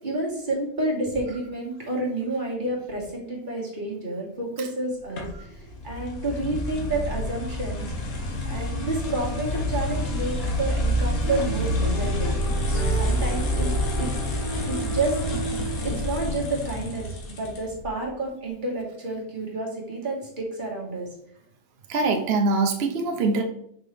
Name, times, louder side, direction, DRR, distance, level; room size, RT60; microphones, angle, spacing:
voice 1, 0.0-12.3 12.7-14.1 14.7-15.2 15.8-21.2, right 2 dB, 35° right, -3 dB, 1.9 m, -30 dB
sound 1, 5.2-17.9, left 1 dB, 70° left, 1.6 m, -28 dB
sound 2, 9.0-16.3, right 3 dB, 40° left, 0.5 m, -36 dB
voice 2, 21.9-23.4, right 3 dB, 50° right, 4 dB, 0.9 m, -23 dB
5.9 x 5.0 x 3.3 m, 0.69 s
omnidirectional pair, 1.6 m